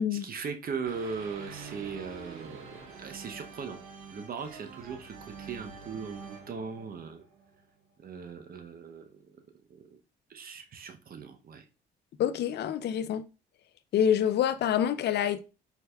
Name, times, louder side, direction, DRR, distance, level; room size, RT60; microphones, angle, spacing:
voice 1, 0.0-3.8 4.1-7.2 8.0-9.2 9.7-10.0 10.3-11.7, right 5 dB, 45° right, 0.7 m, -39 dB
sound 1, 0.9-7.8, right 5 dB, 85° right, 0.9 m, -47 dB
voice 2, 12.2-13.2 13.9-15.4, left 9 dB, 60° left, 0.4 m, -26 dB
4.5 x 3.3 x 2.3 m
cardioid pair, 90°, 20 cm